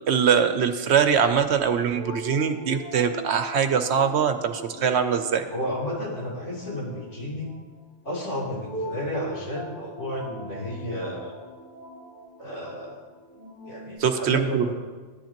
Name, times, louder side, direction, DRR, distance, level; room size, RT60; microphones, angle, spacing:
voice 1, 0.1-5.4 14.0-14.7, right 7 dB, 70° right, 9 dB, 0.9 m, -22 dB
sound 1, 1.7-14.0, right 2 dB, 15° left, 2.5 m, -41 dB
voice 2, 5.5-7.5 8.0-11.4 12.4-13.0 13.7-14.7, left 1 dB, 75° left, -7 dB, 3.6 m, -32 dB
14.0 x 10.5 x 2.9 m, 1.4 s
omnidirectional pair, 1.2 m